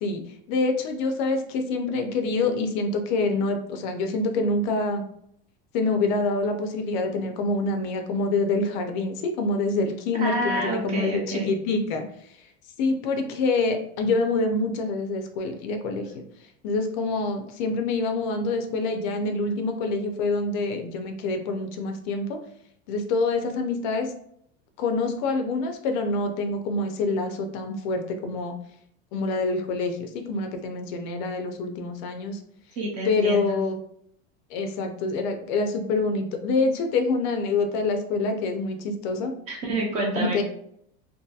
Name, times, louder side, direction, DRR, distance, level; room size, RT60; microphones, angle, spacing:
voice 1, 0.5-5.0 5.7-12.0 12.4-12.5 12.8-16.2 16.6-22.4 22.9-24.1 24.8-28.5 29.1-32.4 33.0-33.7 34.5-39.3 40.2-40.4, left 3 dB, 50° left, 5 dB, 0.4 m, -26 dB
voice 2, 10.1-11.5 32.8-33.6 39.5-40.4, right 1 dB, 25° right, 0 dB, 0.4 m, -28 dB
2.7 x 2.5 x 2.3 m, 0.69 s
supercardioid pair, 165°, 31 cm